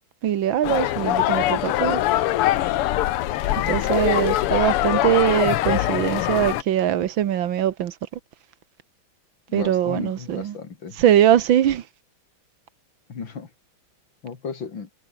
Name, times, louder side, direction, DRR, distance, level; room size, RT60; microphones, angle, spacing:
voice 1, 0.2-2.0 3.7-7.9 9.5-10.6 11.0-11.8, right 11 dB, 65° right, 1.8 m, -21 dB
sound 1, 0.6-6.6, left 14 dB, 85° left, 1.8 m, -22 dB
voice 2, 1.4-2.0 3.4-4.3 9.5-11.0 13.1-13.5 14.2-14.9, left 5 dB, 60° left, 3.2 m, -36 dB
omnidirectional pair, 2.4 m